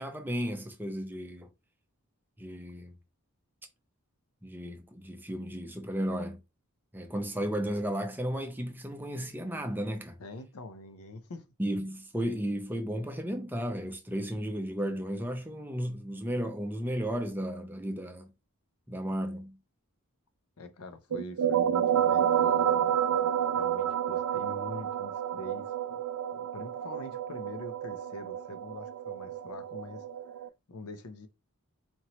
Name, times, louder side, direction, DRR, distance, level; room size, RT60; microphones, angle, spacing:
voice 1, 0.0-1.5 2.4-2.9 4.4-6.4 6.9-10.2 11.6-18.3 18.9-19.6, equal, 10° right, 0.6 m, -34 dB
voice 2, 10.2-11.5 20.6-22.9 23.5-26.0 26.3-30.0 30.7-31.3, left 2 dB, 75° left, 0.7 m, -44 dB
sound 1, 21.1-30.5, right 9 dB, 85° right, 0.4 m, -29 dB
4.3 x 3.0 x 2.9 m
head